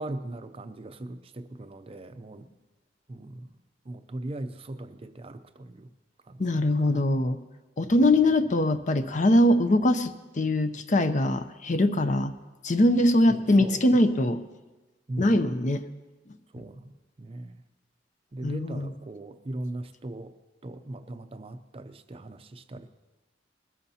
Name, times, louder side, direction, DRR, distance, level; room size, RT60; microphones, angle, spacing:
voice 1, 0.0-2.5 3.1-3.5 3.9-5.9 6.3-7.2 13.3-13.8 15.1-15.5 16.5-17.6 18.3-20.3 20.6-22.9, right 1 dB, 30° right, 9 dB, 0.5 m, -39 dB
voice 2, 6.4-7.4 7.8-12.3 12.6-14.4 15.2-15.8 18.4-18.9, left 1 dB, 45° left, 10 dB, 0.6 m, -22 dB
21.0 x 13.5 x 2.8 m, 1.1 s
head